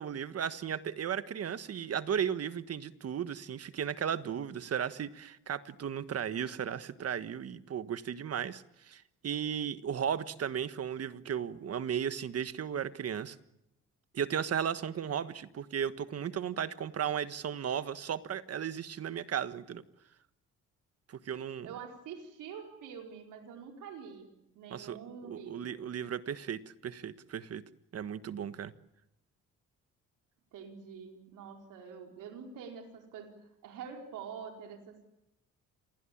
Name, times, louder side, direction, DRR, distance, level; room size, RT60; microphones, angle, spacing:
voice 1, 0.0-13.4 14.1-19.8 21.1-21.7 24.7-25.0 25.3-27.6 27.9-28.7, right 8 dB, 55° right, 12 dB, 1.4 m, -35 dB
voice 2, 21.6-24.3 24.5-25.8 30.5-33.3 33.6-35.1, right 6 dB, 85° right, 3 dB, 4.6 m, -46 dB
27.5 x 21.0 x 8.7 m, 0.88 s
cardioid pair, 90°, 30 cm